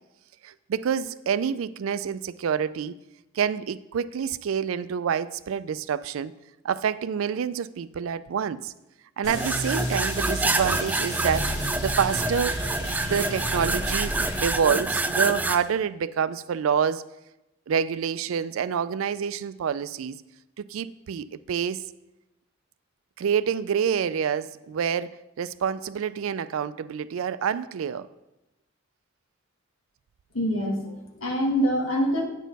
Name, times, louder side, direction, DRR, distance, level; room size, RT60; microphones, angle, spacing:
voice 1, 0.4-3.0 3.3-6.3 6.6-8.7 9.2-17.0 17.7-20.2 20.6-21.9 23.2-28.1, right 7 dB, 80° right, 15 dB, 0.4 m, -27 dB
sound 1, 9.2-14.5, equal, 35° left, 2.2 m, -32 dB
sound 2, 9.3-15.6, right 2 dB, 10° right, 0.3 m, -27 dB
voice 2, 30.3-32.2, equal, 75° left, 1 dB, 1.6 m, -25 dB
9.1 x 6.3 x 4.0 m, 0.94 s
head